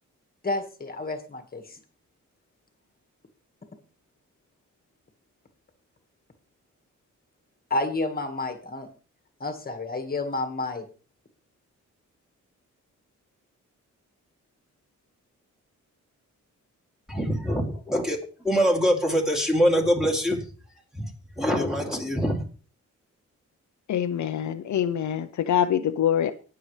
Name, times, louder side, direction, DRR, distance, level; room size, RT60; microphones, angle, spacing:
voice 1, 0.4-1.8 7.7-8.9 9.4-10.8, left 2 dB, 30° left, 1.7 m, -30 dB
voice 2, 17.1-20.4 21.0-21.1 21.4-22.4, equal, ahead, 2.7 m, -24 dB
voice 3, 23.9-26.3, left 9 dB, 65° left, 0.7 m, -25 dB
19.0 x 6.9 x 3.3 m
wide cardioid pair, 130°, 31 cm